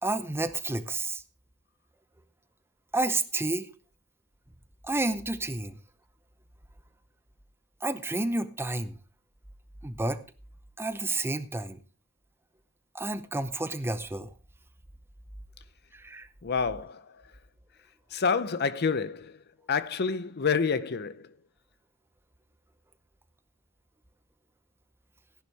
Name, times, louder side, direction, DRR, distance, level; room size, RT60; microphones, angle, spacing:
voice 1, 0.0-1.2 2.9-3.7 4.8-5.8 7.8-9.0 9.8-10.2 10.8-11.8 12.9-14.3 15.9-16.3, right 2 dB, 10° right, 0.7 m, -30 dB
voice 2, 16.4-17.0 18.1-19.4 19.7-21.3, left 5 dB, 50° left, 0.7 m, -28 dB
15.0 x 10.5 x 3.4 m
head